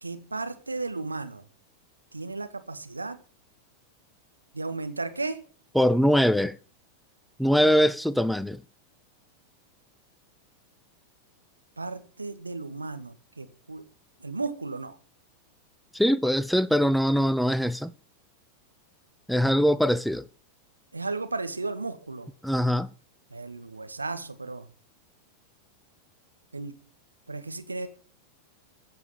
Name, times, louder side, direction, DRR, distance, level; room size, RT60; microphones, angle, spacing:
voice 1, 0.0-1.4 2.1-3.2 4.5-5.4 11.8-13.8 14.2-14.9 20.9-22.3 23.3-24.7 26.5-26.7 27.3-27.9, right 3 dB, 80° right, 1.8 m, -34 dB
voice 2, 5.7-6.5 7.4-8.6 15.9-17.9 19.3-20.3 22.4-22.9, equal, ahead, 0.6 m, -22 dB
15.0 x 7.1 x 8.8 m
figure-of-eight pair, 90°, 0 cm